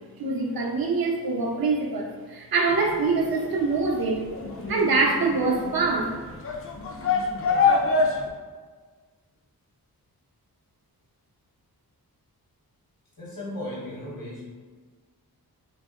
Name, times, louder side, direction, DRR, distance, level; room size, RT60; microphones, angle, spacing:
voice 1, 0.2-4.2 4.7-6.2, right 3 dB, 70° right, 0 dB, 0.6 m, -24 dB
sound 1, 2.7-8.3, left 4 dB, 40° left, 0.4 m, -26 dB
voice 2, 13.2-14.4, left 1 dB, 65° left, -6 dB, 1.1 m, -35 dB
2.8 x 2.7 x 2.3 m, 1.4 s
wide cardioid pair, 85°, 37 cm